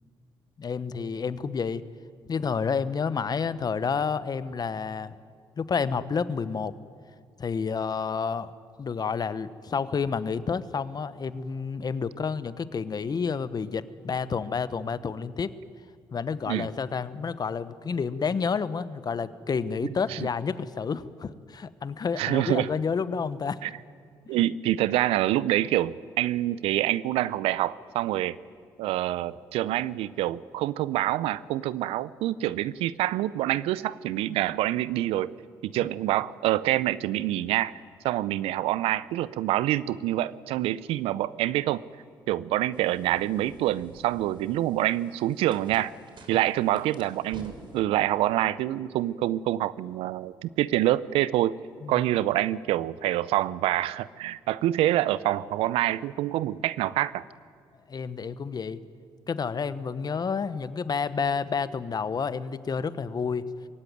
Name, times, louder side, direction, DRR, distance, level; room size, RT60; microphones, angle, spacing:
voice 1, 0.6-1.8 2.3-5.1 5.6-6.7 7.4-8.5 8.8-15.5 16.1-23.6 24.3-24.5 35.8-35.9 51.8-52.0 57.9-58.8 59.3-63.5, left 5 dB, 40° left, 14 dB, 1.1 m, -30 dB
voice 2, 22.2-22.7 23.6-23.7 24.3-28.4 28.8-35.3 35.6-37.7 38.0-41.8 42.3-45.9 46.3-51.6 51.9-57.2, right 14 dB, 75° right, 19 dB, 0.6 m, -26 dB
sound 1, 42.7-47.8, right 3 dB, 55° right, 3.5 m, -50 dB
22.0 x 16.0 x 9.3 m, 2.1 s
hypercardioid pair, 50°, 10 cm